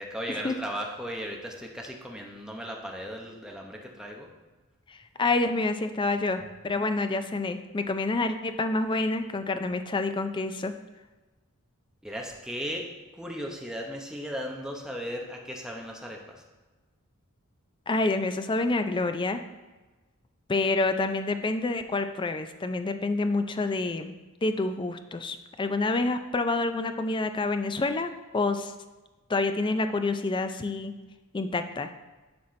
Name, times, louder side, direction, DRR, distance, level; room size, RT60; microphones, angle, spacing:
voice 1, 0.0-4.3 12.0-12.9 13.2-16.2, equal, 5° right, 0 dB, 0.8 m, -36 dB
voice 2, 4.9-10.7 17.9-19.4 20.5-24.1 24.4-28.7 29.3-30.9 31.3-31.9, left 3 dB, 20° left, 8 dB, 0.4 m, -28 dB
11.0 x 4.3 x 3.2 m, 1.2 s
head